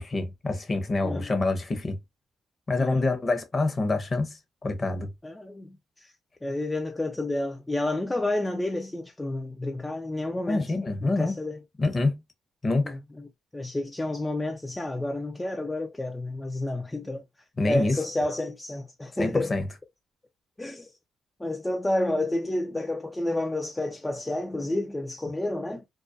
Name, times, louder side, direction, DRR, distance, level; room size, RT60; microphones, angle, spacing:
voice 1, 0.0-2.0 2.7-4.4 4.6-5.1 10.5-11.4 11.8-12.2 12.6-12.9 17.6-18.0 19.2-19.6, left 3 dB, 30° left, 0.7 m, -26 dB
voice 2, 2.8-3.1 5.2-6.1 6.4-10.7 11.0-11.6 12.8-13.3 13.5-17.2 17.7-19.5 20.6-20.9 21.4-25.8, left 1 dB, 15° left, 0.3 m, -30 dB
2.3 x 2.1 x 2.5 m
cardioid pair, 90°, 0 cm